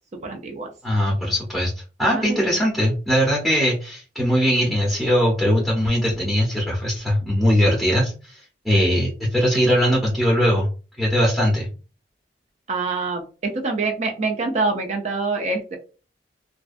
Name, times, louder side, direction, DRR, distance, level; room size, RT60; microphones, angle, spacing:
voice 1, 0.2-0.7 2.1-2.5 12.7-15.8, right 3 dB, 35° right, 3 dB, 0.3 m, -25 dB
voice 2, 0.8-1.7 2.0-8.4 8.6-10.7 11.0-11.7, equal, ahead, -5 dB, 0.7 m, -20 dB
2.5 x 2.2 x 2.4 m, 0.35 s
head